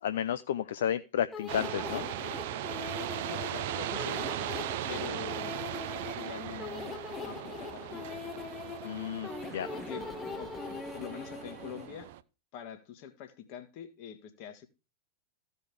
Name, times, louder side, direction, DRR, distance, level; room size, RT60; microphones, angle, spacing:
voice 1, 0.0-2.1 8.8-9.7, left 9 dB, 60° left, 0.4 m, -32 dB
sound 1, 1.3-11.9, left 5 dB, 20° left, 0.7 m, -42 dB
sound 2, 1.5-12.2, right 13 dB, 50° right, 0.5 m, -38 dB
voice 2, 3.3-4.6 4.8-5.6 6.0-8.0 9.7-10.1 10.4-12.1 12.5-14.7, left 8 dB, 45° left, 1.6 m, -45 dB
15.0 x 5.1 x 4.9 m
figure-of-eight pair, 90°, 0 cm